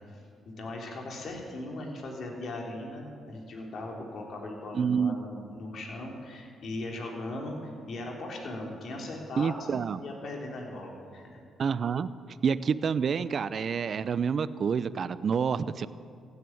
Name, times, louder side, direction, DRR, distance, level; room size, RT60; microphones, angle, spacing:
voice 1, 0.1-7.6 7.9-11.4, left 2 dB, 55° left, 0 dB, 3.5 m, -39 dB
voice 2, 4.7-5.1 9.4-10.0 11.6-12.1 12.4-15.9, right 6 dB, 50° right, 15 dB, 0.6 m, -28 dB
16.0 x 9.6 x 9.2 m, 2.4 s
cardioid pair, 90°, 0 cm